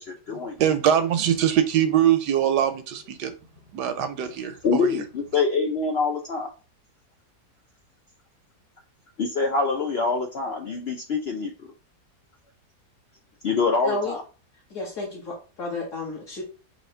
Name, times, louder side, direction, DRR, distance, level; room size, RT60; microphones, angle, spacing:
voice 1, 0.1-0.6 4.6-6.5 9.2-11.7 13.4-14.2, left 4 dB, 75° left, 2 dB, 0.5 m, -25 dB
voice 2, 0.6-3.3 3.7-5.0, right 9 dB, 80° right, 10 dB, 1.2 m, -22 dB
voice 3, 13.8-14.2 14.7-16.4, left 2 dB, 50° left, -6 dB, 1.9 m, -32 dB
4.2 x 2.9 x 4.3 m, 0.34 s
omnidirectional pair, 1.8 m